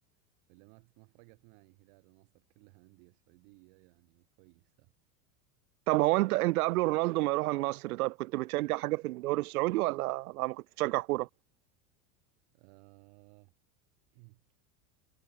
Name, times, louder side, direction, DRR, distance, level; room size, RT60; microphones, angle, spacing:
voice 1, 0.5-4.9 12.5-13.5 14.1-14.4, right 40 dB or more, 65° right, 6.7 m, -60 dB
voice 2, 5.9-11.3, right 19 dB, 90° right, 0.9 m, -29 dB
supercardioid pair, 130°, 43 cm